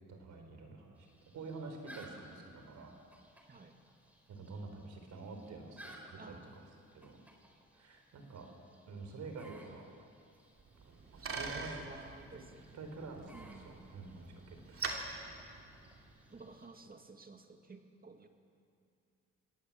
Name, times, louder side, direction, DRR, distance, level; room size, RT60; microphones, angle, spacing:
voice 1, 0.1-1.1 1.3-3.0 4.3-6.6 6.9-7.2 7.7-8.5 8.9-9.9 10.8-11.8 12.3-12.4 12.7-15.2, right 3 dB, 70° right, 4 dB, 4.4 m, -48 dB
sound 1, 0.9-16.7, equal, 5° right, 4.4 m, -60 dB
voice 2, 3.5-3.8 6.2-6.7 11.4-12.6 13.3-13.7 16.3-18.3, right 3 dB, 30° right, 5 dB, 2.2 m, -53 dB
Bicycle, 10.6-16.3, right 3 dB, 45° right, 3.1 m, -44 dB
25.5 x 18.0 x 7.5 m, 2.5 s
cardioid pair, 90°, 30 cm